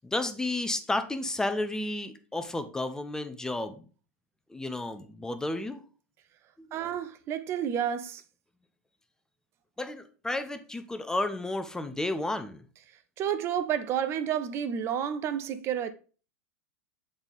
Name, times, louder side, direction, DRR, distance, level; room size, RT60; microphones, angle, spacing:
voice 1, 0.0-3.8 4.5-5.8 9.8-12.6, left 2 dB, 10° left, 0.6 m, -32 dB
voice 2, 6.7-8.2 13.2-15.9, right 9 dB, 35° right, 0.5 m, -30 dB
7.1 x 4.0 x 3.5 m
figure-of-eight pair, 95°, 7 cm